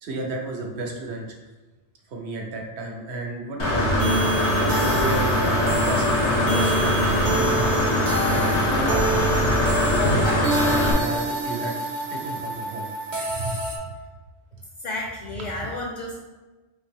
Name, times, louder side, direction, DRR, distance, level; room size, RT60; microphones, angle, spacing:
voice 1, 0.0-1.4 2.1-4.1 4.6-10.0 10.6-11.8 12.1-12.9 13.3-13.6 14.5-14.6, right 3 dB, 75° right, 1 dB, 1.0 m, -33 dB
Engine / Mechanisms, 3.6-10.9, left 1 dB, 85° left, 1.3 m, -22 dB
sound 1, 4.0-13.8, right 1 dB, 50° right, 0.7 m, -28 dB
voice 2, 14.8-16.2, left 2 dB, 55° left, 0 dB, 0.5 m, -31 dB
3.8 x 2.8 x 3.6 m, 1.2 s
omnidirectional pair, 1.1 m